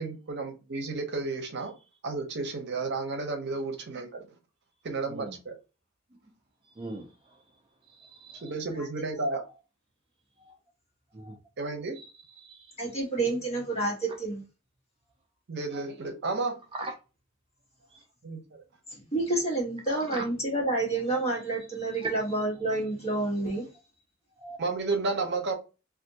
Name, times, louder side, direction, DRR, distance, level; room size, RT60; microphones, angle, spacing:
voice 1, 0.0-1.7 2.0-4.3 4.8-5.5 8.4-9.4 11.6-12.0 15.5-16.6 18.2-18.4 24.6-25.5, right 3 dB, 60° right, 0.7 m, -32 dB
voice 2, 6.8-7.1 8.0-8.5 10.4-10.5 11.1-11.4 12.0-12.1 12.4-12.7 16.8-16.9 24.4-24.6, right 2 dB, 25° right, 0.4 m, -41 dB
voice 3, 12.8-14.4 18.9-23.7, right 2 dB, 30° left, 1.4 m, -29 dB
3.4 x 2.5 x 2.7 m
head